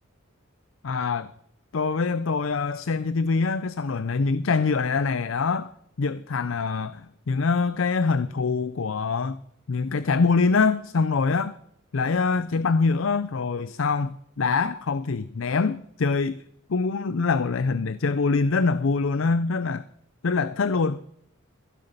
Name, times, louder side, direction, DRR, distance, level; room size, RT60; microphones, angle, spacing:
voice 1, 0.8-1.3 1.7-5.7 6.0-9.4 9.7-11.6 11.9-16.4 16.7-19.8 20.2-21.0, left 4 dB, 70° left, 0.5 m, -24 dB
15.5 x 7.1 x 6.7 m
head